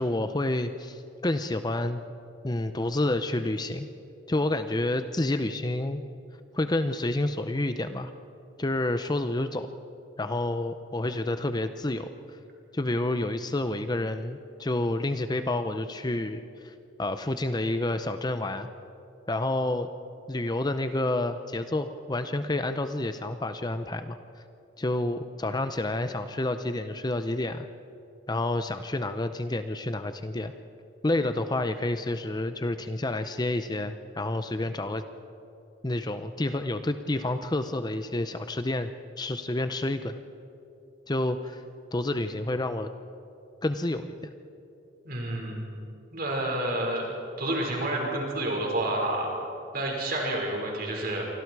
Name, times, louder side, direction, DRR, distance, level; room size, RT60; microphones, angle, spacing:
voice 1, 0.0-2.0 2.4-3.9 4.3-6.0 6.5-8.1 8.6-9.7 10.2-12.1 12.7-16.7 17.0-18.7 19.3-19.9 20.3-24.2 24.8-27.7 28.3-30.5 31.0-35.0 35.8-38.9 39.2-40.2 41.1-41.6 41.9-42.9 43.6-44.2, left 2 dB, 20° left, 9 dB, 0.7 m, -29 dB
voice 2, 45.0-45.7 46.1-47.1 47.4-49.3 49.7-51.3, right 1 dB, 50° right, -1 dB, 5.4 m, -29 dB
28.5 x 24.5 x 4.8 m, 2.7 s
head